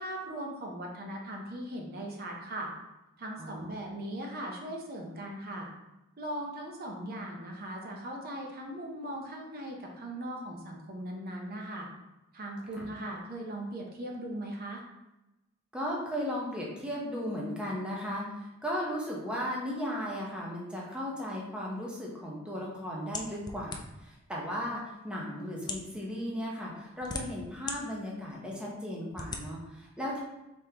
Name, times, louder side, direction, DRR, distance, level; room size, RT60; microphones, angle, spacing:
voice 1, 0.0-2.7 3.2-5.7 6.2-11.9 12.3-14.8, right 1 dB, 45° right, 0 dB, 0.7 m, -39 dB
voice 2, 3.4-3.8 12.7-12.9 15.7-30.2, equal, 5° right, -4 dB, 0.8 m, -36 dB
sound 1, 23.1-24.1 24.9-25.0 25.6-25.9 26.7-27.8 28.3-28.4 29.1-29.4, left 4 dB, 20° left, 0.4 m, -38 dB
5.0 x 3.5 x 2.9 m, 0.97 s
head